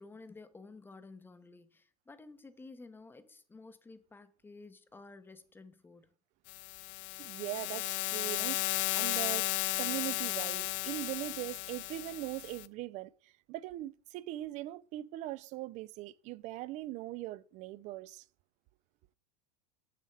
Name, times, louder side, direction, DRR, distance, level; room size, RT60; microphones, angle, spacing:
voice 1, 0.0-6.1, left 3 dB, 10° left, 0.7 m, -52 dB
sound 1, 6.5-12.7, left 18 dB, 50° left, 0.4 m, -35 dB
voice 2, 7.2-9.5 9.8-18.2, right 16 dB, 35° right, 0.4 m, -41 dB
7.4 x 6.5 x 3.3 m
figure-of-eight pair, 85°, 20 cm